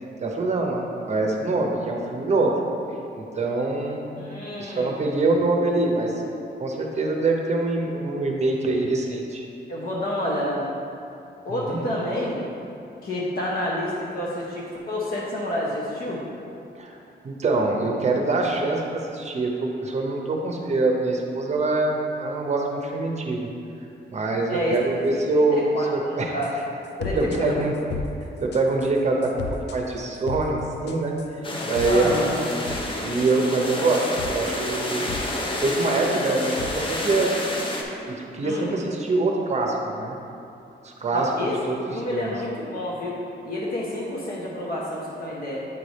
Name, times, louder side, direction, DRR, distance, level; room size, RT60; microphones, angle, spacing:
voice 1, 0.2-2.5 3.2-4.1 4.6-6.1 6.6-9.4 11.5-11.8 16.8-17.0 17.2-23.5 24.1-26.3 27.2-27.7 28.4-29.3 29.7-31.2 31.6-32.3 33.0-35.2 35.6-37.3 38.1-40.2 40.8-41.3 41.7-41.8 42.1-42.3, right 2 dB, 40° right, 1 dB, 0.7 m, -24 dB
voice 2, 4.2-5.0 9.7-10.7 11.4-12.4 13.0-16.2 24.5-25.2 25.5-26.5 27.0-27.6 31.9-32.4 38.4-38.7 41.1-41.5 41.9-43.2 43.4-45.7, left 1 dB, 55° left, -5 dB, 0.9 m, -29 dB
sound 1, 26.4-26.6 26.8-27.4 27.8-28.1 28.5-28.9 29.2-29.8 30.2-30.5 30.9-31.3 31.6-32.8 33.1-34.6 34.9-35.3 35.5-36.9, left 4 dB, 70° left, 0.5 m, -35 dB
sound 2, 31.4-37.8, left 1 dB, 30° left, 0.7 m, -29 dB
8.3 x 3.3 x 4.1 m, 2.7 s
wide cardioid pair, 140°, 18 cm